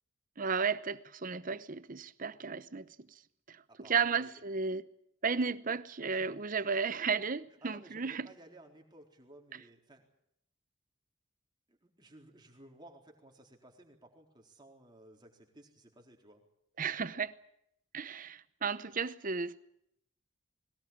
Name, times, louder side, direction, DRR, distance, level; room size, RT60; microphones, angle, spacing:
voice 1, 0.4-2.9 3.5-4.8 5.2-8.3 16.8-17.3 17.9-19.6, right 5 dB, 45° right, 0.8 m, -34 dB
voice 2, 3.7-4.3 7.6-10.1 11.7-16.4 16.8-17.2, right 1 dB, 20° right, 4.0 m, -57 dB
21.0 x 19.0 x 8.8 m
head